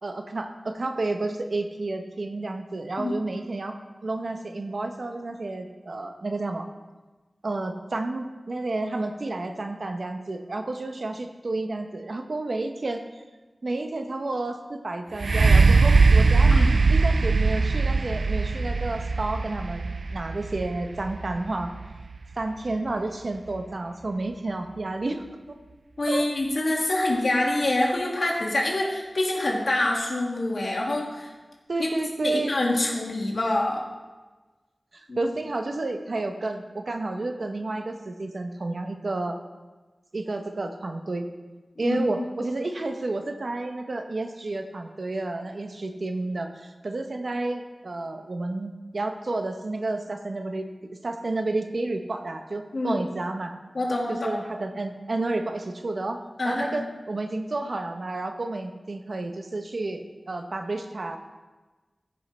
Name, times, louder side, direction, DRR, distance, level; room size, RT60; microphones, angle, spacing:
voice 1, 0.0-3.8 4.0-6.7 7.4-13.2 13.6-21.7 22.4-25.2 26.1-26.3 31.7-32.5 34.9-39.4 40.1-41.3 41.8-50.7 51.0-53.5 54.1-56.2 56.4-61.2, right 2 dB, 65° right, 5 dB, 0.9 m, -31 dB
sound 1, 15.2-22.9 23.6-23.7, right 4 dB, 85° right, 0.4 m, -21 dB
voice 2, 16.4-16.7 26.0-31.3 31.8-31.9 32.2-33.8 35.1-35.3 41.8-42.3 52.7-53.0 53.7-54.4 56.4-56.9, left 1 dB, 70° left, -1 dB, 1.9 m, -26 dB
14.5 x 5.6 x 4.3 m, 1.2 s
wide cardioid pair, 75°, 0 cm